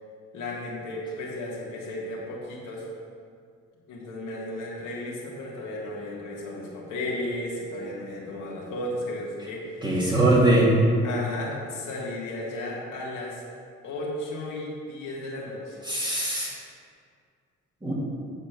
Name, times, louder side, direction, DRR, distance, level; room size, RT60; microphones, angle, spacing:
voice 1, 0.3-2.9 3.9-10.2 11.0-13.4 13.8-15.8, left 1 dB, 80° left, -4 dB, 2.0 m, -34 dB
voice 2, 9.8-10.8 15.9-16.5 17.8-17.9, right 1 dB, 15° right, -7 dB, 2.4 m, -21 dB
8.8 x 4.3 x 6.7 m, 2.2 s
cardioid pair, 90°, 30 cm